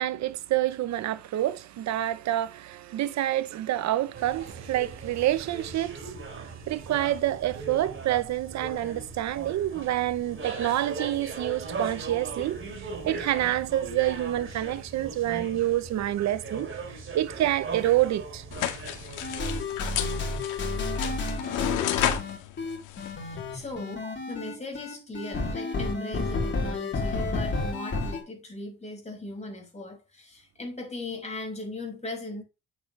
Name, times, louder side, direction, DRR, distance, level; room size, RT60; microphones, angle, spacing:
voice 1, 0.0-18.8 19.2-19.3, right 14 dB, 65° right, 0.9 m, -28 dB
sound 1, 4.1-19.7, right 4 dB, 40° right, 3.4 m, -39 dB
sound 2, 18.5-23.7, left 12 dB, 80° left, 1.9 m, -32 dB
sound 3, 19.2-28.2, left 3 dB, 35° left, 4.2 m, -31 dB
voice 2, 23.2-32.4, left 2 dB, 20° left, 6.1 m, -38 dB
8.7 x 7.8 x 3.3 m
cardioid pair, 90°, 30 cm